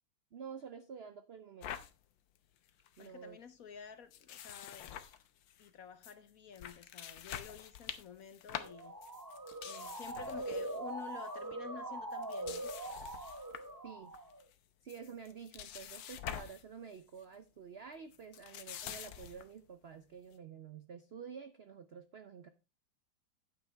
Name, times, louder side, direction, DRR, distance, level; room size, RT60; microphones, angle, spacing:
voice 1, 0.3-1.8 3.0-3.4 13.8-14.1 14.8-22.5, right 6 dB, 70° right, 0.5 m, -49 dB
sound 1, 1.6-1.9 2.4-2.5 2.7-3.1 4.1-5.7 6.0-6.1 6.5-10.8 11.1-11.4 12.1-13.7 14.1-14.5 14.9-16.7 16.9-17.2 18.1-19.5, left 10 dB, 80° left, 1.6 m, -47 dB
voice 2, 3.0-4.9 5.6-8.9 9.6-12.7, left 7 dB, 60° left, 1.0 m, -50 dB
Motor vehicle (road) / Siren, 8.5-14.4, right 2 dB, 15° right, 0.7 m, -42 dB
9.4 x 8.8 x 3.4 m
omnidirectional pair, 2.0 m